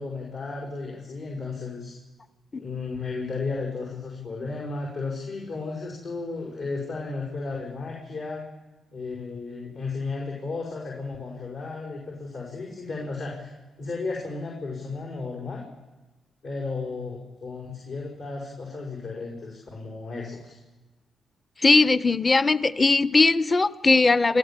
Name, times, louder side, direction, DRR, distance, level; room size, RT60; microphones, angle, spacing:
voice 1, 0.0-1.9 2.6-8.4 8.9-15.7 16.4-20.6, left 3 dB, 80° left, -4 dB, 5.5 m, -34 dB
voice 2, 21.6-24.4, left 3 dB, 35° left, 16 dB, 0.8 m, -19 dB
28.0 x 14.0 x 7.5 m, 1.2 s
hypercardioid pair, 45°, 0 cm